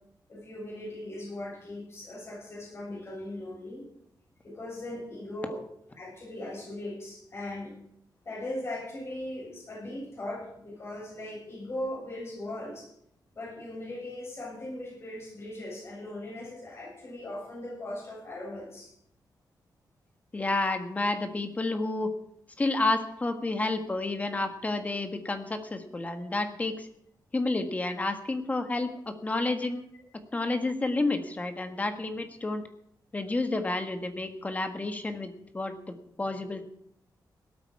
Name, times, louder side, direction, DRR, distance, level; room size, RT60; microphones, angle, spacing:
voice 1, 0.3-3.8 4.4-5.6 6.0-7.7 8.2-12.9 13.3-18.9, left 1 dB, 35° left, -4 dB, 7.5 m, -39 dB
voice 2, 20.3-22.1 22.6-26.9 27.3-29.9 30.3-32.6 33.1-36.6, left 2 dB, 20° left, 7 dB, 1.5 m, -30 dB
17.5 x 12.5 x 4.8 m, 0.72 s
wide cardioid pair, 160°, 7 cm